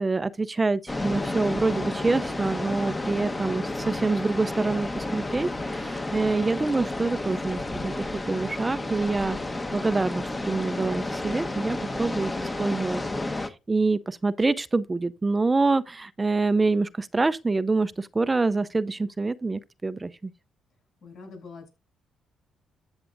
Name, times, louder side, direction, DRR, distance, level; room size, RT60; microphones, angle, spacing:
voice 1, 0.0-9.4 9.7-20.3, right 3 dB, 20° right, 0.4 m, -26 dB
sound 1, 0.9-13.5, left 2 dB, 20° left, 1.0 m, -31 dB
voice 2, 21.0-21.7, left 4 dB, 65° left, 6.7 m, -43 dB
14.0 x 8.0 x 2.5 m
cardioid pair, 90°, 0 cm